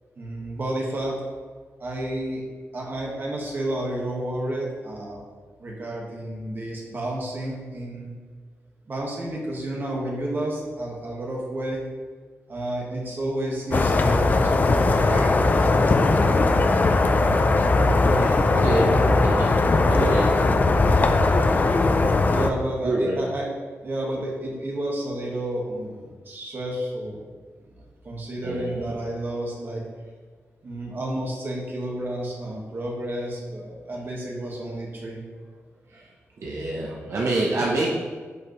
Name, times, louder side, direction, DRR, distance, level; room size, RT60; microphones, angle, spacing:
voice 1, 0.2-1.2 1.8-2.4 2.7-5.2 5.6-8.1 8.9-11.8 12.5-15.8 18.0-19.1 22.3-23.5 23.8-27.2 28.0-29.8 30.6-35.2, right 1 dB, 40° right, -2 dB, 1.5 m, -31 dB
sound 1, 13.7-22.5, left 3 dB, 35° left, 0.4 m, -19 dB
voice 2, 19.9-20.5 22.8-23.1 28.4-28.8 35.9-36.0 36.4-37.9, right 2 dB, 65° right, -4 dB, 0.9 m, -26 dB
7.7 x 5.0 x 3.1 m, 1.5 s
wide cardioid pair, 140°, 5 cm